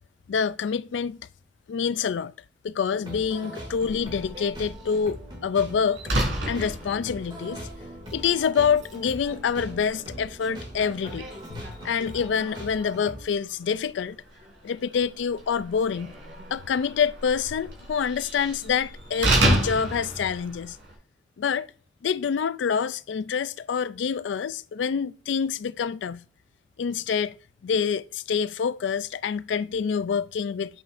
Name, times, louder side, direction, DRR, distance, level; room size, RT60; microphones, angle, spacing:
voice 1, 0.3-1.2 1.7-2.3 2.6-7.6 8.1-14.2 14.6-16.1 16.5-20.8 21.4-21.7 22.0-26.2 26.8-27.4 27.6-30.8, left 6 dB, 80° left, 0.4 m, -27 dB
sound 1, 2.9-13.2, equal, 25° right, 2.4 m, -41 dB
Slam, 3.8-21.0, right 1 dB, 80° right, 3.7 m, -32 dB
8.5 x 7.0 x 2.6 m
head